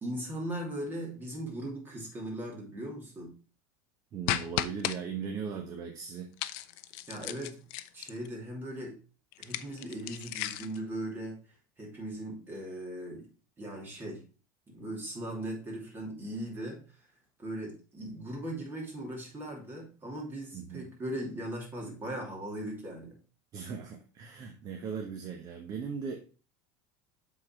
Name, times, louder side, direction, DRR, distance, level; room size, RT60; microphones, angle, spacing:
voice 1, 0.0-3.4 7.1-7.6 7.9-9.0 9.4-11.4 11.8-13.3 13.6-14.2 14.7-17.0 17.4-23.2, right 1 dB, 20° right, 2.7 m, -39 dB
voice 2, 4.1-6.3 20.5-20.9 23.5-26.2, right 6 dB, 35° right, 0.9 m, -38 dB
sound 1, 4.3-5.0 6.4-8.3 9.3-10.8, left 15 dB, 60° left, 0.5 m, -35 dB
7.7 x 4.1 x 4.4 m
supercardioid pair, 135°, 10 cm